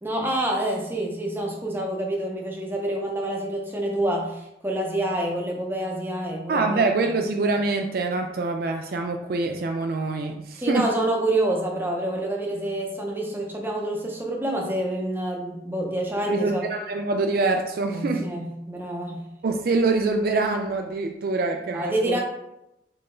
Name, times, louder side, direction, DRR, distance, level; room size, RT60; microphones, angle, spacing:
voice 1, 0.0-6.9 10.6-16.6 17.9-19.2 21.7-22.2, right 1 dB, 10° right, 0 dB, 0.6 m, -27 dB
voice 2, 6.5-10.9 16.3-18.3 19.4-22.2, right 3 dB, 55° right, 4 dB, 0.3 m, -25 dB
3.8 x 3.2 x 3.8 m, 0.87 s
head